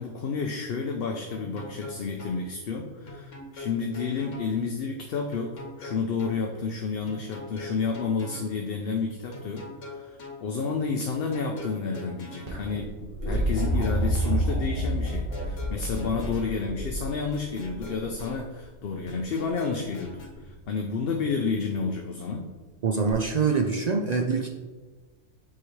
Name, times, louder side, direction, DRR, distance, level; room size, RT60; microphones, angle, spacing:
voice 1, 0.0-22.5, left 4 dB, 60° left, 3 dB, 0.8 m, -30 dB
sound 1, 1.3-2.4 3.1-4.5 5.3-6.4 7.1-8.5 9.3-10.4 11.1-12.5 13.3-14.4 15.1-16.5 17.3-18.4 19.1-20.3, left 3 dB, 90° left, 1.5 m, -42 dB
sound 2, 12.5-18.4 20.0-20.5 23.1-23.2, right 1 dB, 40° right, 1.4 m, -29 dB
voice 2, 22.8-24.5, right 5 dB, 60° right, 2 dB, 0.4 m, -24 dB
7.8 x 4.8 x 3.1 m, 1.3 s
omnidirectional pair, 1.2 m